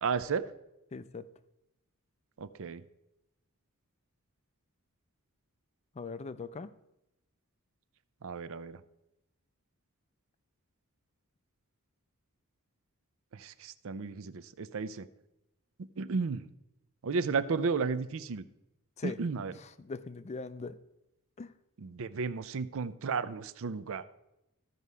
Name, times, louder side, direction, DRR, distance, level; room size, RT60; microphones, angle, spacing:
voice 1, 0.0-0.5 2.4-2.8 8.2-8.8 13.3-15.1 16.0-16.5 17.0-18.4 19.0-19.5 21.8-24.0, right 5 dB, 65° right, 14 dB, 0.5 m, -33 dB
voice 2, 0.9-1.3 6.0-6.7 19.0-19.2 19.8-20.8 21.4-21.5, left 4 dB, 30° left, 14 dB, 0.4 m, -40 dB
14.0 x 5.5 x 4.8 m, 0.89 s
head